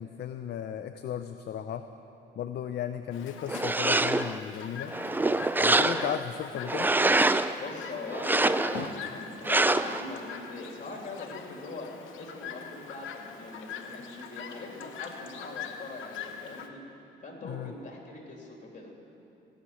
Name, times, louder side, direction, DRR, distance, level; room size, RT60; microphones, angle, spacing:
voice 1, 0.0-1.9 2.4-4.9 5.5-6.9 17.4-17.7, left 9 dB, 55° left, 9 dB, 0.5 m, -35 dB
Chirp tweet, 3.1-16.7, left 7 dB, 80° left, 1.0 m, -43 dB
sound 1, 3.5-4.4 4.9-6.2 6.6-7.5 8.1-8.9 9.4-10.0, right 2 dB, 10° right, 0.4 m, -25 dB
voice 2, 7.6-11.9 12.1-16.8 17.2-18.9, left 2 dB, 40° left, 0 dB, 3.0 m, -41 dB
16.5 x 6.5 x 9.7 m, 2.8 s
cardioid pair, 90°, 20 cm